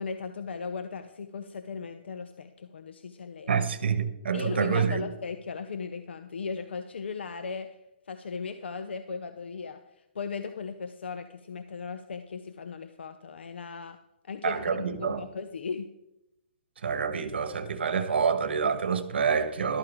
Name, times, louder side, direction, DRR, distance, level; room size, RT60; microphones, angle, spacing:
voice 1, 0.0-3.6 4.3-7.8 8.1-14.0 14.3-15.9, left 5 dB, 80° left, 0.8 m, -37 dB
voice 2, 3.5-5.1 14.4-15.2 16.8-19.8, right 6 dB, 70° right, 1.4 m, -27 dB
13.5 x 12.5 x 3.7 m
hypercardioid pair, 175°, 6 cm